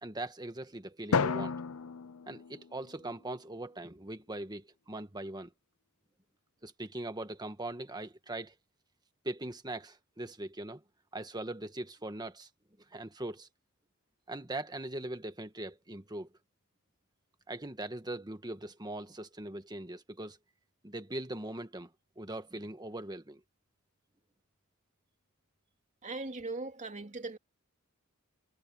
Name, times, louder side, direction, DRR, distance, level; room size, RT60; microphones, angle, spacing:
voice 1, 0.0-1.5 2.3-5.5 6.6-8.5 9.2-10.8 11.1-12.5 12.9-13.5 14.3-16.3 17.5-20.4 20.8-23.4, right 1 dB, 20° right, 1.5 m, -41 dB
Drum, 1.1-3.4, left 5 dB, 70° left, 0.6 m, -33 dB
voice 2, 26.0-27.4, right 3 dB, 35° right, 2.3 m, -39 dB
head